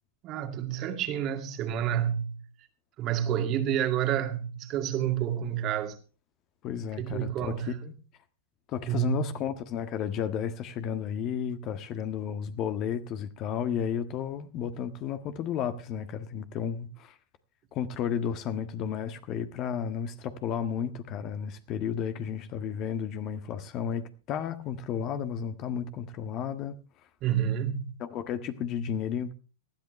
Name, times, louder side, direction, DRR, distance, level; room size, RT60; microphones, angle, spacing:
voice 1, 0.2-2.4 3.0-6.0 7.0-7.8 8.9-9.3 27.2-27.9, right 10 dB, 40° right, 2.2 m, -29 dB
voice 2, 6.6-7.9 8.7-17.1 17.7-26.7 28.0-29.3, left 8 dB, 40° left, 1.5 m, -33 dB
19.5 x 13.0 x 3.2 m
hypercardioid pair, 100°, 0 cm